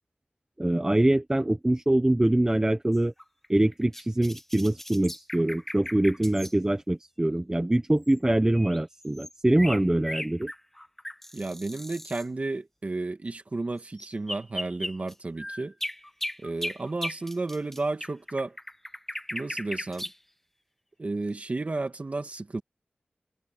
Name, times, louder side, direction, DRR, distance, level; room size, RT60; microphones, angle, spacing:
voice 1, 0.6-3.1 3.5-10.5, right 1 dB, 15° right, 1.0 m, -24 dB
sound 1, 2.9-6.5 8.1-8.2 8.5-12.2 14.0-20.2, left 1 dB, 10° left, 1.3 m, -37 dB
voice 2, 11.3-15.7 16.4-18.6 19.3-20.1 21.0-22.6, right 3 dB, 40° right, 1.9 m, -32 dB
wide cardioid pair, 95°, 3 cm